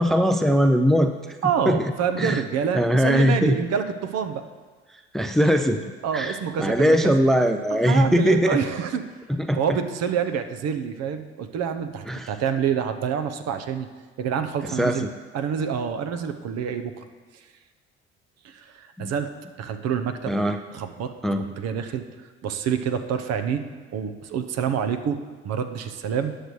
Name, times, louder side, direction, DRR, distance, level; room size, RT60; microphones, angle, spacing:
voice 1, 0.0-1.4 1.7-1.8 2.2-2.4 2.7-3.6 5.1-5.8 6.1-8.6 9.3-9.8 12.1-12.3 14.6-15.1 19.0-19.1 20.3-20.6 21.2-21.4, equal, ahead, 7 dB, 0.6 m, -21 dB
voice 2, 1.4-4.4 6.0-7.2 7.8-9.0 9.6-13.9 14.2-15.1 15.3-17.0 18.4-19.3 19.6-20.3 20.7-21.1 21.4-23.6 23.9-25.2 25.4-26.3, right 7 dB, 50° right, 8 dB, 0.9 m, -27 dB
18.0 x 6.6 x 3.2 m, 1.4 s
figure-of-eight pair, 60°, 34 cm